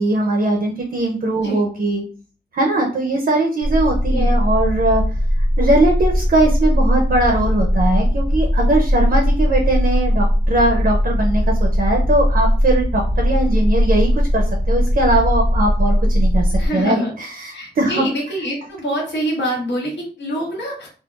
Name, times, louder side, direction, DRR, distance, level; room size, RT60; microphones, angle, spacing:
voice 1, 0.0-2.0 2.5-5.0 5.6-18.1, right 2 dB, 55° right, 1 dB, 0.5 m, -20 dB
sound 1, 3.6-16.7, equal, 5° right, 0.5 m, -18 dB
voice 2, 16.6-17.1 17.5-20.9, equal, 70° left, -5 dB, 1.1 m, -25 dB
3.6 x 2.0 x 2.4 m, 0.40 s
wide cardioid pair, 160°, 19 cm